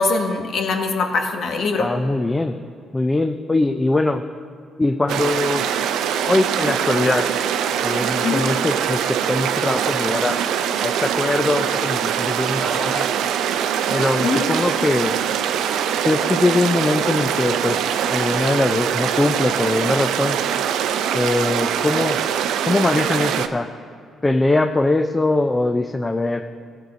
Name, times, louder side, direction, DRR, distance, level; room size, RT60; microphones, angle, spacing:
voice 1, 0.0-1.9 8.2-8.4 14.2-14.5, left 4 dB, 65° left, 4 dB, 1.3 m, -22 dB
voice 2, 1.8-2.5 2.9-4.2 4.8-5.6 6.3-7.3 7.8-10.4 10.8-13.1 13.9-15.1 16.0-20.4 21.1-22.2 22.6-23.7 24.2-26.4, left 2 dB, 20° left, 7 dB, 0.4 m, -21 dB
sound 1, 5.1-23.5, right 8 dB, 85° right, 0.5 m, -23 dB
16.0 x 6.4 x 5.3 m, 2.4 s
cardioid pair, 90°, 0 cm